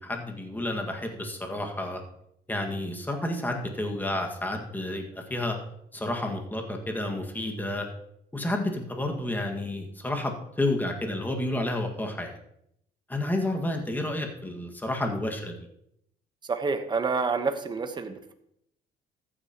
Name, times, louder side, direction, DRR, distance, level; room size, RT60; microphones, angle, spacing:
voice 1, 0.0-2.0 2.5-5.6 5.9-7.9 8.3-12.4 13.1-15.5, left 1 dB, 10° left, 2 dB, 1.8 m, -30 dB
voice 2, 16.5-18.3, right 4 dB, 25° right, 7 dB, 1.1 m, -28 dB
14.0 x 9.0 x 3.0 m, 0.75 s
cardioid pair, 110°, 17 cm